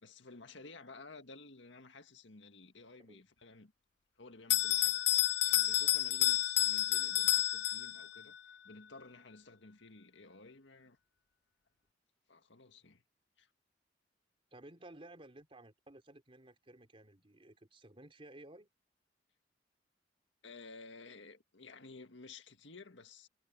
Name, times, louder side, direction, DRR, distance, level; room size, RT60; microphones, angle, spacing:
voice 1, 0.0-3.7 4.2-5.0 5.4-8.4 8.6-11.0 12.3-13.0 13.4-13.5 20.4-23.3, left 3 dB, 90° left, 1.8 m, -54 dB
Bell, 4.5-8.2, left 13 dB, 65° left, 0.5 m, -30 dB
voice 2, 14.5-18.7, right 1 dB, 30° right, 3.4 m, -55 dB
head